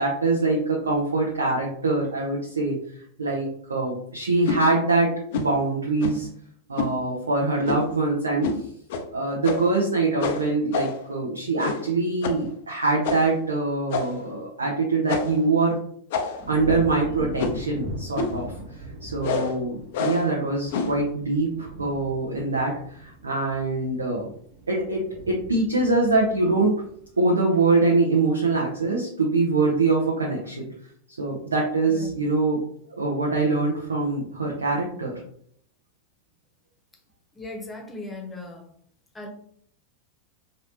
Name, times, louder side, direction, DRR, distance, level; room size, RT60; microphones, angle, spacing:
voice 1, 0.0-2.8 3.2-6.3 6.7-8.5 9.1-15.8 16.5-18.5 19.0-24.3 24.7-26.7 27.2-30.7 31.2-32.6 33.0-35.2, right 3 dB, 75° right, -3 dB, 0.7 m, -24 dB
sound 1, 4.4-4.6 5.3-5.6 6.0-6.3 6.8-7.0 7.6-7.9 8.4-8.6 8.9-9.0 9.4-9.8 10.2-11.1 11.6-11.9 12.2-12.5 13.0-13.4 13.9-14.3 15.1-15.4 16.1-16.5 17.4-17.7 18.2-18.4 19.2-19.6 19.9-20.3 20.7-21.0, left 5 dB, 55° left, 0.5 m, -28 dB
sound 2, 16.4-27.7 28.1-28.6, right 2 dB, 50° right, 1.1 m, -40 dB
voice 2, 37.3-38.7 39.1-39.3, left 2 dB, 10° left, 1 dB, 1.0 m, -37 dB
4.2 x 2.7 x 2.9 m, 0.64 s
figure-of-eight pair, 90°, 0 cm